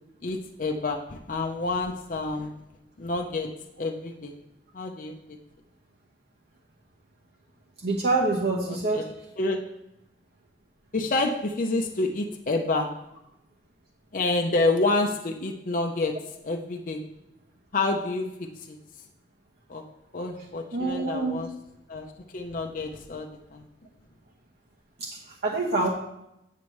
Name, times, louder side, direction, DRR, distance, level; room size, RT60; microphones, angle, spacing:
voice 1, 0.2-2.5 3.0-3.5 3.8-4.4 4.7-5.2 8.9-9.0 9.4-9.6 10.9-12.9 14.1-16.1 16.4-17.0 17.7-18.8 19.7-19.8 20.1-21.5 21.9-22.0 22.3-23.7, left 2 dB, 50° left, 2 dB, 0.6 m, -28 dB
voice 2, 7.8-9.1 20.7-21.4 25.0-25.9, right 3 dB, 65° right, -4 dB, 1.1 m, -26 dB
8.7 x 7.4 x 3.1 m, 0.84 s
head